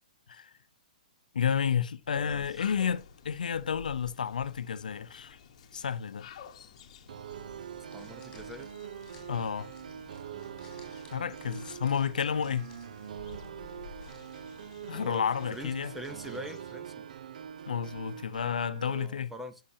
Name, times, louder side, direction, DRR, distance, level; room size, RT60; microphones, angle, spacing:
voice 1, 1.3-5.4 5.7-6.3 9.3-9.7 11.1-12.7 14.9-15.9 17.7-19.3, left 7 dB, 85° left, 0.6 m, -31 dB
sound 1, 2.0-16.9, left 6 dB, 50° left, 1.1 m, -52 dB
voice 2, 2.1-2.6 7.9-8.7 14.9-15.2 15.5-17.1 19.0-19.6, equal, 5° right, 0.6 m, -44 dB
sound 2, 7.1-19.1, right 8 dB, 70° right, 0.4 m, -44 dB
sound 3, 7.3-18.7, left 3 dB, 15° left, 4.3 m, -60 dB
10.0 x 6.6 x 2.7 m
hypercardioid pair, 155°, 4 cm